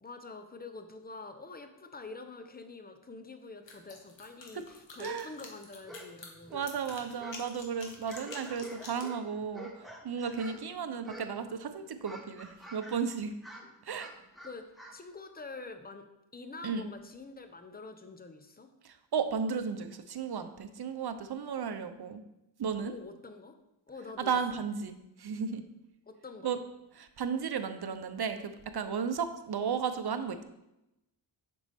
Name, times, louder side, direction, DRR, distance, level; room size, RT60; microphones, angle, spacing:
voice 1, 0.0-6.6 13.6-13.7 14.4-14.6 14.9-18.7 22.8-23.5 23.9-24.4 26.1-26.6, left 3 dB, 20° left, 7 dB, 0.9 m, -46 dB
sound 1, 3.7-9.1, left 3 dB, 60° left, 1.6 m, -48 dB
voice 2, 5.0-5.3 6.5-13.3 13.8-14.1 16.6-16.9 18.8-22.2 22.6-23.0 24.2-25.6 26.4-26.6 27.0-30.4, right 6 dB, 50° right, 9 dB, 0.8 m, -34 dB
sound 2, 5.8-6.1 6.4-7.5 7.9-10.7 11.0-11.5 11.8-13.0 13.3-15.0, equal, ahead, 1.5 m, -48 dB
7.0 x 5.4 x 3.6 m, 0.89 s
cardioid pair, 50°, 49 cm